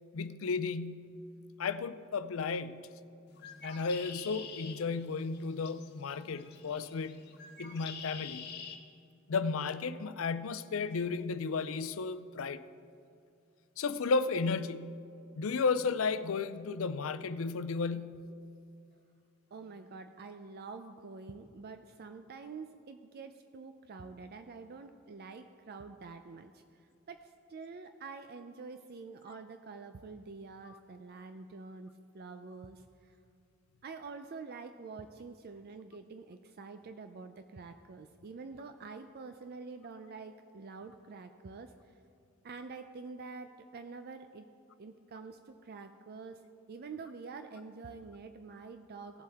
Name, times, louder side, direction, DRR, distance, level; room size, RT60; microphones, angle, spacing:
voice 1, 0.1-1.2 1.6-2.9 3.6-7.2 7.6-8.5 9.3-12.6 13.8-15.0 15.4-18.3, left 4 dB, 75° left, 12 dB, 0.5 m, -33 dB
Bird, 3.3-8.8, left 6 dB, 55° left, 1.2 m, -47 dB
voice 2, 19.5-26.6 27.1-33.2 33.8-41.7 42.4-44.5 44.8-46.4 46.7-49.2, right 4 dB, 50° right, 8 dB, 0.4 m, -47 dB
17.5 x 7.6 x 3.6 m, 2.5 s
head